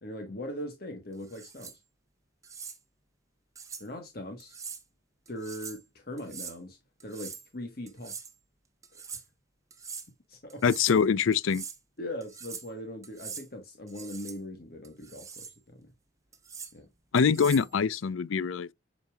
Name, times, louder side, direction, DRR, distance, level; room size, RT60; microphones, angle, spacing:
voice 1, 0.0-1.7 3.8-4.5 5.3-8.2 8.9-9.0 10.3-10.6 12.0-15.9 16.7-16.8, left 1 dB, 50° left, 1.3 m, -40 dB
sound 1, 1.2-1.8 2.4-2.8 3.6-3.9 4.4-4.8 5.3-5.8 6.2-6.6 7.0-7.5 7.9-8.3 8.8-9.2 9.7-10.1 10.5-11.0 11.3-11.8 12.2-12.7 13.0-13.5 13.9-14.4 14.8-15.6 16.3-16.7 17.2-17.7, right 6 dB, 15° right, 0.8 m, -43 dB
voice 2, 10.6-11.6 17.1-18.7, left 6 dB, 90° left, 0.4 m, -24 dB
8.2 x 5.3 x 2.4 m
head